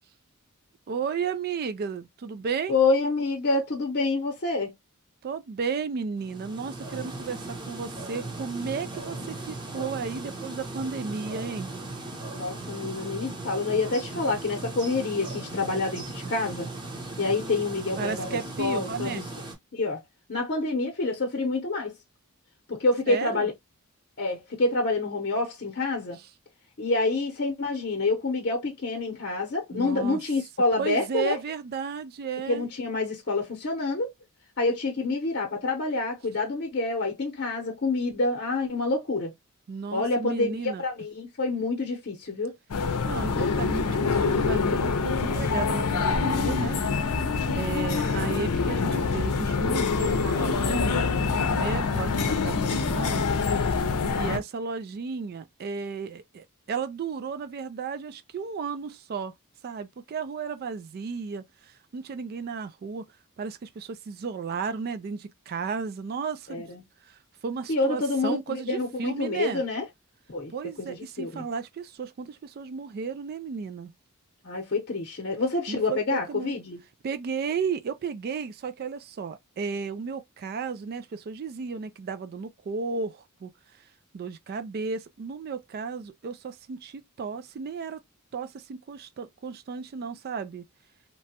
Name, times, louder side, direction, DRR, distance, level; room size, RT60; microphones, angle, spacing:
voice 1, 0.9-2.8 5.2-11.7 18.0-19.2 23.1-23.5 29.7-30.2 30.7-32.7 39.7-40.8 43.0-46.8 47.6-51.1 51.5-53.3 54.2-59.3 59.6-63.0 63.4-66.6 67.0-69.6 70.5-73.9 75.7-76.6 77.0-83.5 83.8-83.9 84.1-88.0 88.3-90.6, right 5 dB, 45° right, 0.3 m, -34 dB
voice 2, 2.7-4.7 12.3-16.7 17.2-19.2 19.7-20.0 20.3-22.0 22.7-23.5 24.2-26.2 26.8-31.4 32.5-34.1 34.6-39.3 39.9-42.5 66.5-66.8 67.7-69.8 70.3-70.5 70.8-71.4 74.4-76.8, left 3 dB, 50° left, 0.8 m, -27 dB
sound 1, 6.2-19.5, right 2 dB, 20° right, 0.8 m, -38 dB
sound 2, 42.7-54.4, left 4 dB, 90° left, 0.6 m, -25 dB
2.9 x 2.2 x 2.7 m
head